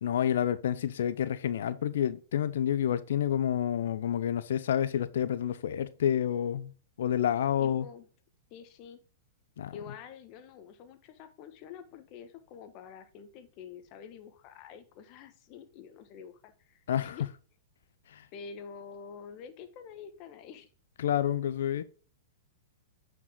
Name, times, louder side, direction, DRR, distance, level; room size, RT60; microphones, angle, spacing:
voice 1, 0.0-6.7 7.0-7.9 9.6-9.7 16.9-17.2 18.1-18.3 21.0-21.8, left 10 dB, 70° left, 0.6 m, -29 dB
voice 2, 7.6-8.1 8.5-9.0 9.7-17.2 18.3-20.7, left 6 dB, 40° left, 1.3 m, -47 dB
8.6 x 5.1 x 3.7 m
hypercardioid pair, 120°, 0 cm